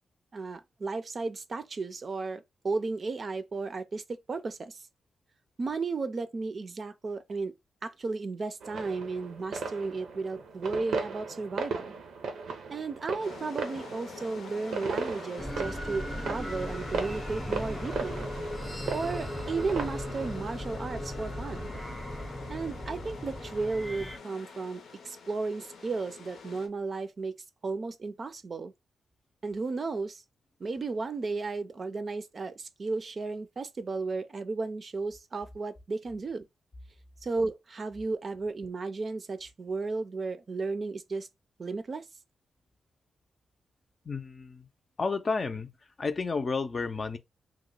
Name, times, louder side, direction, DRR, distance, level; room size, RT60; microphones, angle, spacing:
voice 1, 0.3-4.0 4.3-4.8 5.6-7.5 7.8-11.9 12.7-18.3 18.9-21.7 22.5-27.4 27.6-28.7 29.4-30.2 30.6-36.4 37.2-41.3 41.6-42.0, right 3 dB, 45° right, 0.4 m, -34 dB
sound 1, 8.6-20.4, right 4 dB, 90° right, 0.6 m, -37 dB
sound 2, 13.2-26.7, left 5 dB, 90° left, 0.7 m, -45 dB
sound 3, 15.4-24.2, equal, 5° right, 0.6 m, -37 dB
voice 2, 44.0-44.7 45.0-45.7 46.0-47.2, left 4 dB, 40° left, 0.5 m, -31 dB
2.9 x 2.1 x 3.8 m
cardioid pair, 85°, 0 cm